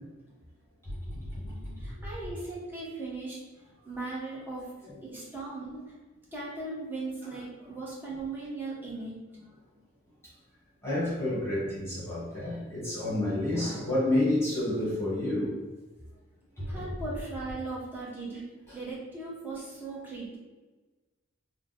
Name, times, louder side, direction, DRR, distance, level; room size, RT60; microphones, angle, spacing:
voice 1, 0.8-1.9 4.8-5.0 7.3-7.4 10.8-15.6 16.6-16.9 18.7-18.8, left 1 dB, 10° left, -9 dB, 1.3 m, -30 dB
voice 2, 1.8-3.4 3.8-4.7 5.0-5.8 6.3-9.2 16.7-18.4 18.7-20.4, right 3 dB, 10° right, -7 dB, 1.1 m, -38 dB
3.5 x 2.2 x 3.9 m, 1.2 s
head